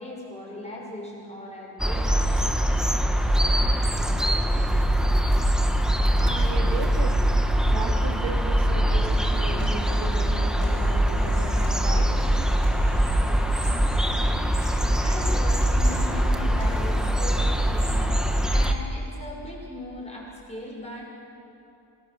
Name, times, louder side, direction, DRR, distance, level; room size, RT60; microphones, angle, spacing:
voice 1, 0.0-2.3 15.0-18.2 18.5-21.0, left 1 dB, 15° left, -3 dB, 6.1 m, -38 dB
sound 1, 1.8-18.7, equal, ahead, 1.2 m, -22 dB
voice 2, 6.1-7.2 7.7-12.1 16.1-16.2, right 4 dB, 80° right, 3 dB, 2.2 m, -35 dB
Human voice, 9.1-17.1, left 2 dB, 45° left, 4.2 m, -42 dB
27.5 x 19.5 x 6.9 m, 2.8 s
wide cardioid pair, 140°, 43 cm